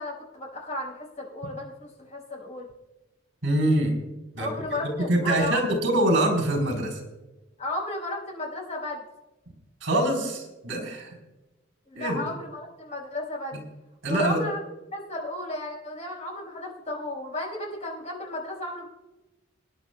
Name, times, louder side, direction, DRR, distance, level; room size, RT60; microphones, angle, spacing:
voice 1, 0.0-2.7 4.4-5.6 7.6-9.0 11.9-13.6 14.0-14.6 14.9-18.8, left 1 dB, 35° left, -1 dB, 5.1 m, -34 dB
voice 2, 3.4-3.9 4.4-4.5 5.0-7.0 9.8-11.1 11.9-12.2 14.0-14.4, right 1 dB, 75° right, 2 dB, 3.9 m, -24 dB
27.0 x 10.5 x 2.3 m, 1.0 s
head